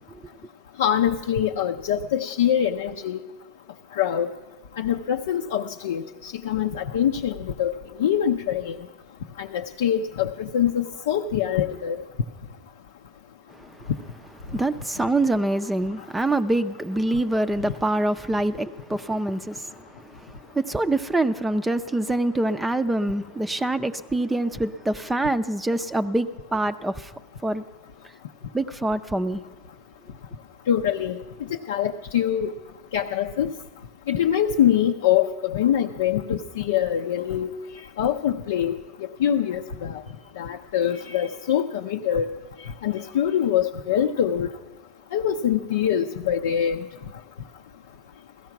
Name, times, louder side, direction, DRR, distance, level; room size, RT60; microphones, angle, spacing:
voice 1, 0.8-3.2 3.9-4.3 4.8-7.7 8.0-8.8 9.4-12.0 30.7-31.2 31.5-32.5 32.9-33.5 34.1-38.8 39.2-40.0 40.4-42.3 42.6-44.5 45.1-46.8, left 9 dB, 80° left, 0.6 m, -24 dB
voice 2, 13.6-13.9 14.4-27.1 27.4-27.6 28.5-29.4, right 2 dB, 10° right, 0.5 m, -25 dB
16.0 x 13.5 x 5.9 m
hypercardioid pair, 110°, 0 cm